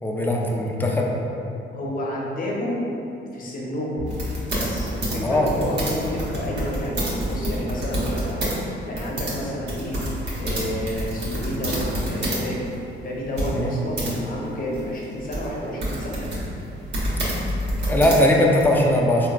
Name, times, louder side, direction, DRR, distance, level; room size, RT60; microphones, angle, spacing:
voice 1, 0.0-1.1 5.2-5.5 13.5-13.7 17.9-19.3, left 1 dB, 10° left, -1 dB, 0.4 m, -19 dB
voice 2, 1.7-2.9 3.3-4.1 4.5-10.0 10.4-12.7 13.0-16.2, left 1 dB, 45° left, -3 dB, 0.7 m, -30 dB
sound 1, 4.0-6.4, left 1 dB, 85° right, 0.4 m, -37 dB
sound 2, 4.1-8.6 8.8-12.4 12.7-12.8 13.4-14.1 14.7-18.6, right 1 dB, 60° right, 0.9 m, -27 dB
3.7 x 2.2 x 2.3 m, 2.8 s
cardioid pair, 90°, 20 cm